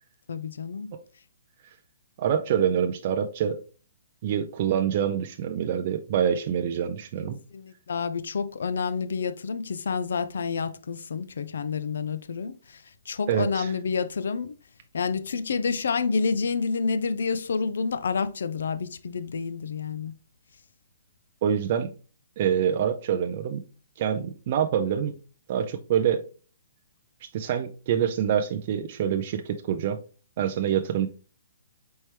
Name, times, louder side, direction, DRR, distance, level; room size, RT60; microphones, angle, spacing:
voice 1, 0.3-0.9 7.2-14.6 14.9-20.1, left 5 dB, 75° left, 0.4 m, -29 dB
voice 2, 2.2-3.6 4.2-7.4 13.3-13.7 21.4-21.9 22.4-23.6 24.0-25.1 25.5-26.2 27.3-30.0 30.4-31.1, right 8 dB, 40° right, 0.4 m, -26 dB
4.3 x 3.3 x 3.2 m
hypercardioid pair, 155°, 0 cm